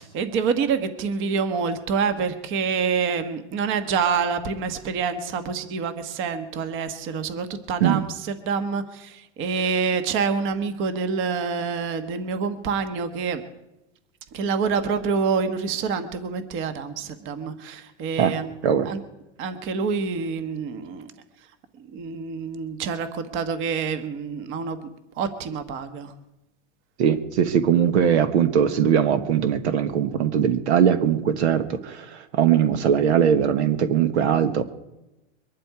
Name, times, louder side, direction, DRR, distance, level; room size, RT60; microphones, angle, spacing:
voice 1, 0.0-13.4 14.3-18.5 18.8-19.0 19.4-21.1 21.9-24.9 25.2-26.1, right 5 dB, 35° right, 9 dB, 1.3 m, -27 dB
voice 2, 27.0-34.6, right 8 dB, 75° right, 10 dB, 1.4 m, -20 dB
23.0 x 11.5 x 4.9 m, 0.95 s
supercardioid pair, 150°, 34 cm